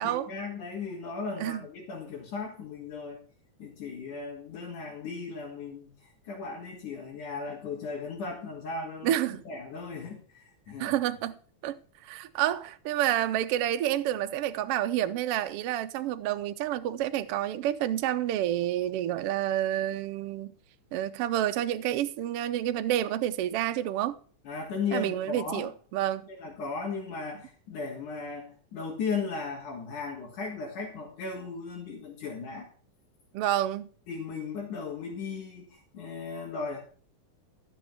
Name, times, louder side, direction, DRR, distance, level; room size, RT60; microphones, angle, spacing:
voice 1, 0.0-3.2 3.6-10.9 24.4-25.7 26.3-32.7 34.1-36.8, left 4 dB, 75° left, 4.0 m, -36 dB
voice 2, 9.0-9.4 10.8-11.4 11.6-20.5 20.9-24.2 24.9-26.3 33.3-33.9, right 12 dB, 80° right, 1.3 m, -29 dB
13.0 x 7.1 x 4.3 m
omnidirectional pair, 3.5 m